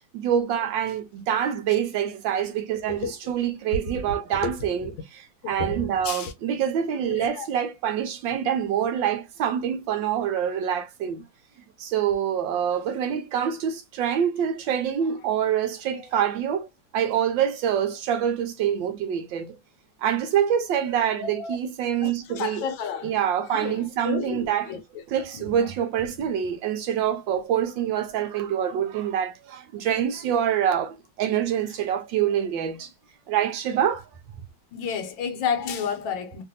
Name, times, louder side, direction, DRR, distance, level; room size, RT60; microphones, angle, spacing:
voice 1, 0.1-11.2 11.8-16.7 16.9-19.6 20.0-22.6 23.0-24.7 25.1-32.9 33.3-34.1, right 9 dB, 75° right, 1.2 m, -26 dB
voice 2, 5.4-6.3 7.1-7.5 21.2-21.5 22.0-24.8 25.3-25.7 26.2-26.3 34.7-36.4, left 6 dB, 75° left, 1.4 m, -31 dB
3.3 x 2.6 x 2.5 m
omnidirectional pair, 2.2 m